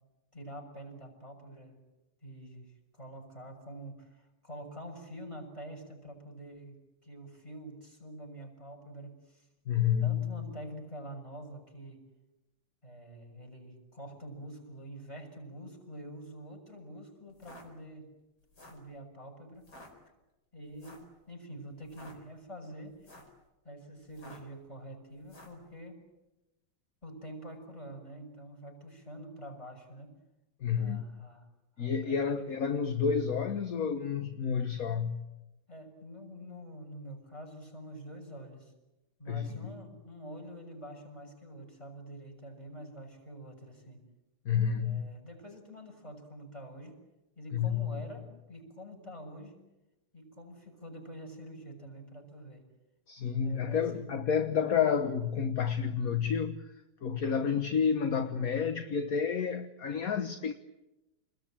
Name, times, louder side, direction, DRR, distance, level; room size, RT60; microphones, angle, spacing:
voice 1, 0.3-1.8 2.2-6.8 7.0-9.5 10.0-12.0 12.8-18.1 18.6-19.7 20.5-23.1 23.6-26.0 27.0-30.2 30.8-31.5 31.8-32.5 35.7-38.7 39.2-44.0 44.8-47.0 47.3-49.6 50.1-52.6 53.4-54.1, right 1 dB, 15° left, 6.7 m, -46 dB
voice 2, 9.7-10.4 30.6-31.1 31.8-35.3 39.3-39.6 44.4-45.1 47.5-48.0 53.1-56.7 57.0-60.5, left 7 dB, 45° left, 1.4 m, -30 dB
sound 1, 17.3-17.7 18.4-18.9 19.6-19.9 20.8-21.1 21.8-22.2 22.9-23.4 24.1-24.5 25.2-25.6, left 1 dB, 60° left, 5.6 m, -52 dB
29.5 x 21.0 x 9.0 m
omnidirectional pair, 2.4 m